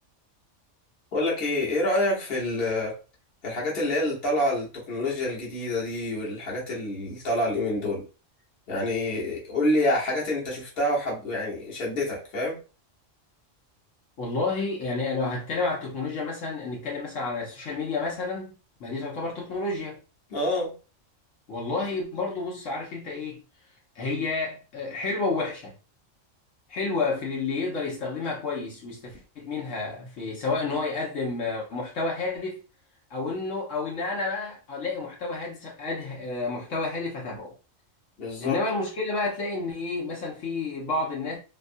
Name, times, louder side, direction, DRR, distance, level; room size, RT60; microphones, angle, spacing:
voice 1, 1.1-3.0 3.4-8.0 8.7-12.6 20.3-20.7 38.2-38.6, left 1 dB, 55° left, 1.2 m, -27 dB
voice 2, 14.2-18.5 18.8-20.0 21.5-23.4 23.9-25.7 26.7-32.6 33.1-37.5 38.4-41.4, left 3 dB, 80° left, 1.2 m, -30 dB
2.8 x 2.4 x 2.5 m
omnidirectional pair, 1.3 m